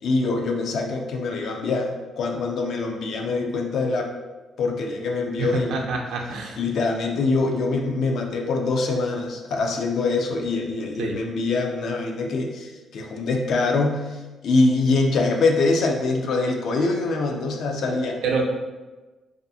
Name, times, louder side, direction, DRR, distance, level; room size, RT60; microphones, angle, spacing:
voice 1, 0.0-4.1 4.6-5.8 6.6-18.2, left 3 dB, 70° left, 2 dB, 0.4 m, -24 dB
voice 2, 5.4-6.6 11.0-11.2 18.2-18.4, right 4 dB, 80° right, 0 dB, 0.4 m, -26 dB
2.4 x 2.3 x 2.6 m, 1.2 s
cardioid pair, 90°, 0 cm